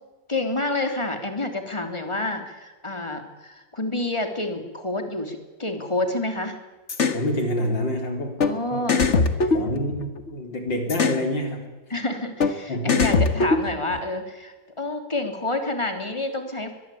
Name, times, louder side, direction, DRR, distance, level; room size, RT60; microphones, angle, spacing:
voice 1, 0.3-6.6 8.4-9.1 11.9-16.7, left 2 dB, 15° left, 6 dB, 3.2 m, -28 dB
sound 1, 6.9-7.2 8.4-8.5 8.9-10.3 10.9-11.2 12.4-12.5 12.9-14.0, left 4 dB, 40° left, 1.8 m, -21 dB
voice 2, 7.1-8.9 9.5-11.7 12.7-13.0, left 1 dB, 85° left, 4 dB, 4.6 m, -27 dB
22.5 x 22.0 x 8.6 m, 1.2 s
omnidirectional pair, 1.9 m